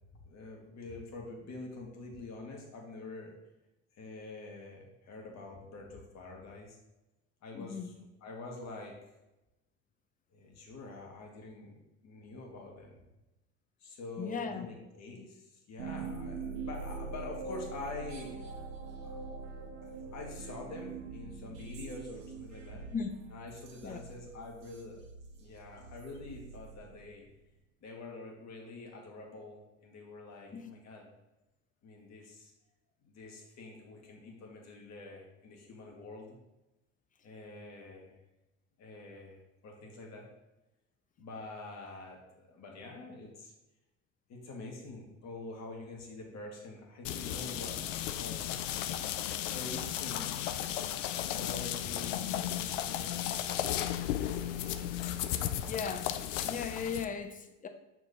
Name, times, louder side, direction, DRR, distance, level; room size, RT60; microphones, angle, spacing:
voice 1, 0.2-3.4 3.9-6.8 7.4-9.0 10.3-13.0 13.8-18.5 19.0-19.1 20.1-22.9 23.3-25.0 25.3-27.2 27.8-31.1 31.8-32.5 33.0-36.4 37.2-38.2 38.8-40.3 41.2-43.5 44.3-48.5 49.3-50.3 51.3-53.5 54.3-54.9, left 3 dB, 45° left, 0 dB, 2.0 m, -46 dB
voice 2, 7.5-7.9 14.2-14.7 22.9-23.1 23.8-24.0 30.5-30.7 55.7-56.1 56.4-57.7, left 6 dB, 20° left, 7 dB, 0.7 m, -37 dB
sound 1, 15.8-27.3, right 4 dB, 75° right, 1.1 m, -44 dB
sound 2, 47.0-57.0, left 11 dB, 90° left, 0.5 m, -35 dB
6.3 x 4.6 x 4.1 m, 0.98 s
supercardioid pair, 90°, 36 cm